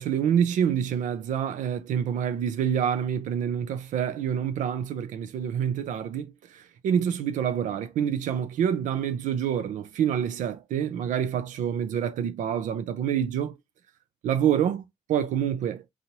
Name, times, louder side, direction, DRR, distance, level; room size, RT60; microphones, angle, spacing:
voice 1, 0.0-13.6 14.2-15.8, right 9 dB, 85° right, 0.6 m, -27 dB
4.0 x 2.9 x 2.8 m
cardioid pair, 70°, 13 cm